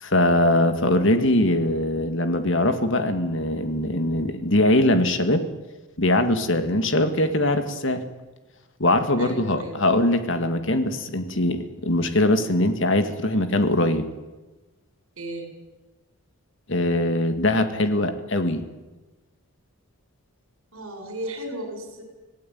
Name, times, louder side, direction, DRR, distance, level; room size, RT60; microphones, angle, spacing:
voice 1, 0.0-5.4 6.0-8.0 8.8-14.1 16.7-18.6, left 1 dB, 55° left, 8 dB, 2.1 m, -22 dB
voice 2, 6.6-7.1 9.2-9.8 15.2-15.5 20.7-22.0, right 1 dB, 70° right, 5 dB, 7.1 m, -36 dB
25.5 x 17.5 x 9.4 m, 1.2 s
head